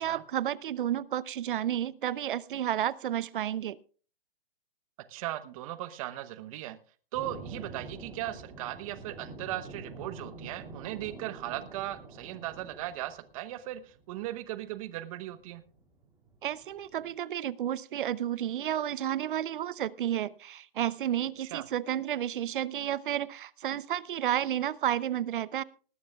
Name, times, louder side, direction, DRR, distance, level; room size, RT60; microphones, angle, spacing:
voice 1, 0.0-3.8 16.4-25.6, right 11 dB, 60° right, 20 dB, 0.7 m, -31 dB
voice 2, 5.1-6.8 7.1-15.6 21.4-21.6, right 14 dB, 35° right, 13 dB, 1.0 m, -38 dB
sound 1, 7.1-17.1, right 3 dB, 10° right, 3.7 m, -46 dB
19.5 x 13.0 x 2.4 m, 0.40 s
hypercardioid pair, 140°, 29 cm